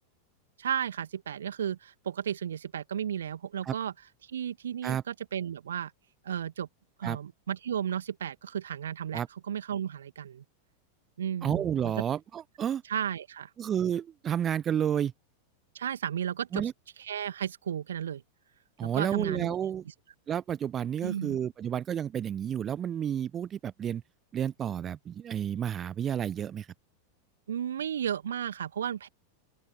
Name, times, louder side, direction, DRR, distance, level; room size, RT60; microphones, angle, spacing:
voice 1, 0.6-3.9 4.2-5.9 6.2-6.7 7.0-10.4 11.2-11.9 12.9-13.5 15.7-16.7 17.0-18.2 18.8-19.5 21.0-21.4 27.5-29.1, right 9 dB, 65° right, 2.3 m, -34 dB
voice 2, 11.4-12.8 13.6-15.1 16.5-16.7 18.8-19.8 20.3-24.0 24.3-26.7, right 9 dB, 25° right, 1.0 m, -31 dB
open air
figure-of-eight pair, 90°, 0 cm